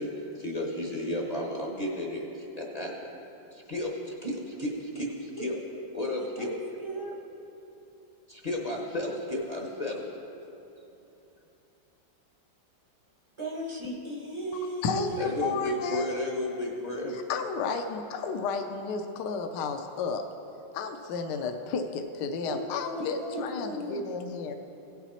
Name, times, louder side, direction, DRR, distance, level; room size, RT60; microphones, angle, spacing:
voice 1, 0.0-3.1 3.5-5.6 5.9-6.5 8.3-10.1 15.2-17.2, left 1 dB, 35° left, -1 dB, 0.7 m, -33 dB
voice 2, 6.4-7.2 13.4-15.6 22.4-24.1, right 1 dB, 25° right, -1 dB, 0.7 m, -36 dB
voice 3, 14.8-16.1 17.3-20.2 20.7-24.5, left 5 dB, 75° left, 6 dB, 1.2 m, -32 dB
16.5 x 6.0 x 4.3 m, 3.0 s
omnidirectional pair, 2.0 m